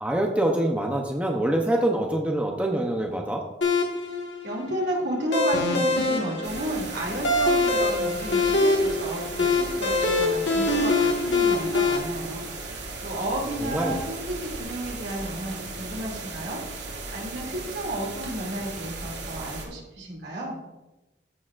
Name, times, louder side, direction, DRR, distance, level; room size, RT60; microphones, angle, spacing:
voice 1, 0.0-3.4 13.6-14.0, right 1 dB, 10° right, 1 dB, 0.7 m, -25 dB
sound 1, 3.6-12.0, left 3 dB, 85° left, 1.6 m, -24 dB
voice 2, 4.4-20.6, right 1 dB, 70° right, -2 dB, 2.7 m, -32 dB
sound 2, 6.4-19.6, right 3 dB, 85° right, 2.3 m, -37 dB
14.5 x 6.8 x 2.5 m, 1.0 s
head